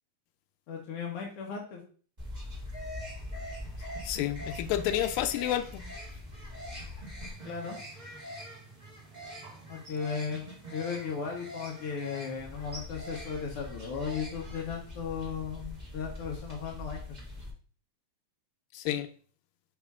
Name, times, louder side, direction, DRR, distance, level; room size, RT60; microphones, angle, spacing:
voice 1, 0.7-1.8 7.4-7.8 9.7-17.0, left 6 dB, 65° left, 1.5 m, -36 dB
sound 1, 2.2-17.5, left 1 dB, 25° right, 1.0 m, -42 dB
voice 2, 4.0-5.9 18.7-19.1, left 12 dB, 90° left, 2.3 m, -30 dB
5.5 x 5.1 x 3.5 m
omnidirectional pair, 3.8 m